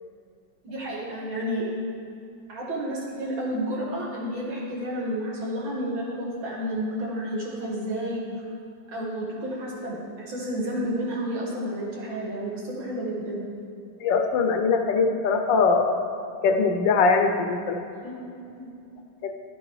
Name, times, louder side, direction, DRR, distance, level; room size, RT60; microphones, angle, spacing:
voice 1, 0.6-1.7 2.5-8.2 8.9-13.4 17.9-18.3 18.5-18.7, equal, 90° right, -4 dB, 2.7 m, -31 dB
voice 2, 14.0-16.0 16.4-17.8 19.2-19.3, left 4 dB, 75° left, 5 dB, 1.4 m, -21 dB
11.5 x 8.8 x 3.2 m, 2.5 s
omnidirectional pair, 2.1 m